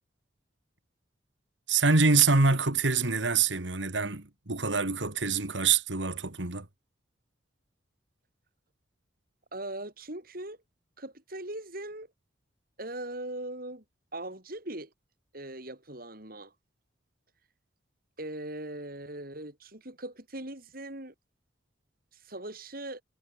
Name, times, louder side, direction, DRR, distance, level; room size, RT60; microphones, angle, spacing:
voice 1, 1.7-6.7, right 4 dB, 80° right, 2.3 m, -25 dB
voice 2, 9.5-10.6 11.0-12.1 12.8-13.8 14.1-14.9 15.3-16.5 18.2-21.1 22.2-23.0, right 1 dB, 50° right, 7.9 m, -40 dB
head